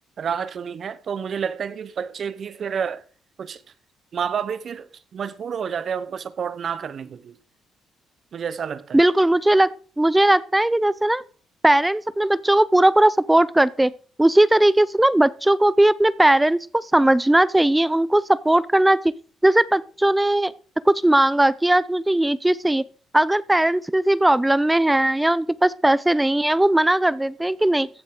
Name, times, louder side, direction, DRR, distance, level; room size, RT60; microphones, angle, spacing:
voice 1, 0.2-3.0 3.4-3.6 4.1-7.4 8.3-9.0, right 7 dB, 55° right, 0.9 m, -29 dB
voice 2, 8.9-9.7 10.0-11.2 11.6-13.9 14.2-19.1 19.4-20.5 20.9-22.8 23.1-27.9, right 1 dB, 10° right, 0.5 m, -18 dB
14.5 x 7.8 x 3.9 m
cardioid pair, 90°, 0 cm